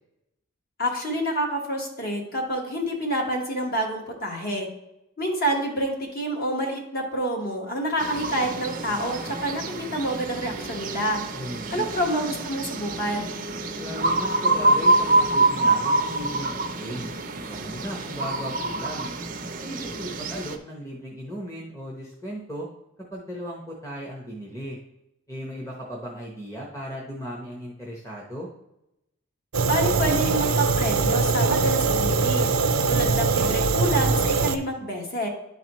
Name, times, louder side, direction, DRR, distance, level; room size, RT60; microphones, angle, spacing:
voice 1, 0.8-4.7 5.2-11.2 11.7-13.4 29.6-32.5 32.9-35.3, right 1 dB, 45° left, 1 dB, 1.3 m, -28 dB
sound 1, 8.0-20.6, right 2 dB, 40° right, 0.5 m, -26 dB
voice 2, 11.3-11.9 13.7-17.1 17.5-19.1 19.6-22.7 23.1-24.8 25.3-28.5, equal, 15° left, -3 dB, 0.9 m, -36 dB
Fire, 29.5-34.6, right 4 dB, 80° right, 0.6 m, -22 dB
10.5 x 4.0 x 3.0 m, 0.87 s
head